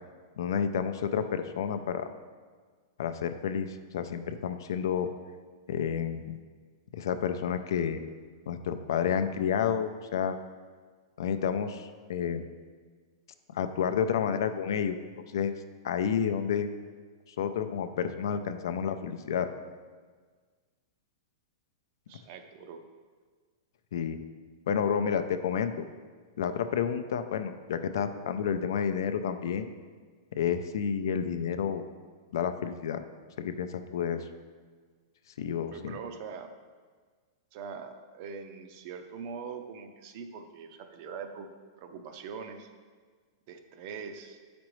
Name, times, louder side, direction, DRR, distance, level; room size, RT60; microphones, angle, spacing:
voice 1, 0.4-2.1 3.0-5.1 5.7-6.4 6.9-8.0 8.5-10.4 11.2-12.4 13.5-15.0 15.3-15.5 15.8-16.7 17.4-19.5 23.9-24.2 24.7-25.8 26.4-29.7 30.4-31.8 32.3-33.0 33.4-34.2 35.4-35.9, left 7 dB, 70° left, 9 dB, 0.4 m, -30 dB
voice 2, 22.1-22.8 35.7-36.5 37.5-41.5 41.8-42.7 43.5-44.4, right 6 dB, 40° right, 7 dB, 0.5 m, -42 dB
7.5 x 5.1 x 3.1 m, 1.5 s
supercardioid pair, 165°, 2 cm